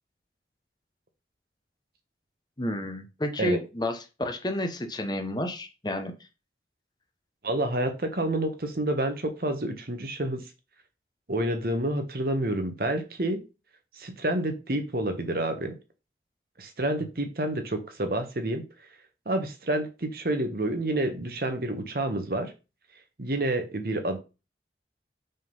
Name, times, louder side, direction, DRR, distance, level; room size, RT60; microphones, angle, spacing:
voice 1, 2.6-6.1, left 1 dB, 25° left, 6 dB, 0.8 m, -31 dB
voice 2, 7.4-10.4 11.3-13.4 14.0-15.8 16.6-18.6 19.3-22.5 23.2-24.2, right 1 dB, 55° right, 7 dB, 1.1 m, -28 dB
5.4 x 3.8 x 5.4 m, 0.30 s
head